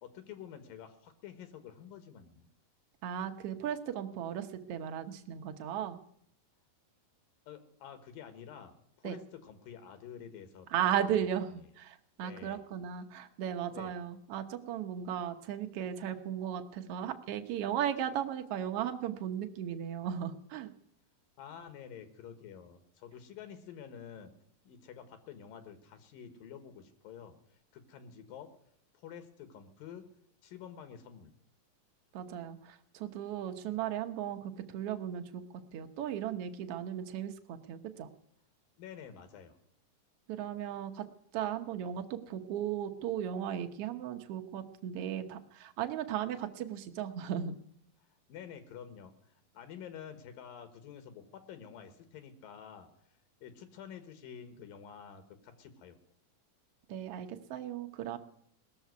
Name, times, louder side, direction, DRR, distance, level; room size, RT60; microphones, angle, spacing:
voice 1, 0.0-2.5 7.5-11.1 12.2-12.6 13.7-13.9 21.4-24.3 24.6-27.4 27.7-28.5 28.9-30.1 30.4-31.3 38.8-39.6 48.3-52.9 53.4-56.0, left 8 dB, 80° left, 10 dB, 3.1 m, -49 dB
voice 2, 3.0-6.0 9.0-9.1 10.7-20.7 32.1-35.4 35.7-38.1 40.3-41.0 41.3-47.6 56.9-58.2, right 9 dB, 65° right, 6 dB, 1.5 m, -36 dB
19.0 x 7.1 x 9.4 m, 0.70 s
omnidirectional pair, 3.9 m